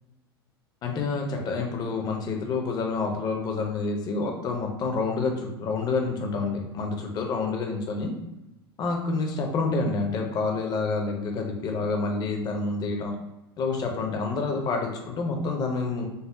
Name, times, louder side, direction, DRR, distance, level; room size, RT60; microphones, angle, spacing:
voice 1, 0.8-8.1 8.8-13.1 13.6-16.1, left 4 dB, 30° left, 3 dB, 0.6 m, -28 dB
5.3 x 2.0 x 2.2 m, 0.97 s
figure-of-eight pair, 85°, 13 cm